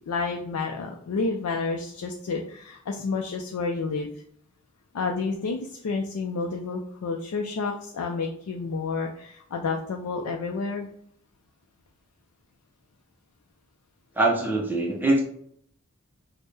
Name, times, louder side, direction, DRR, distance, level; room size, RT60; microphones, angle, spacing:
voice 1, 0.0-4.1 4.9-10.9, left 4 dB, 90° left, 1 dB, 0.4 m, -30 dB
voice 2, 14.2-15.2, right 2 dB, 10° right, -1 dB, 0.5 m, -23 dB
4.4 x 2.1 x 3.2 m, 0.66 s
head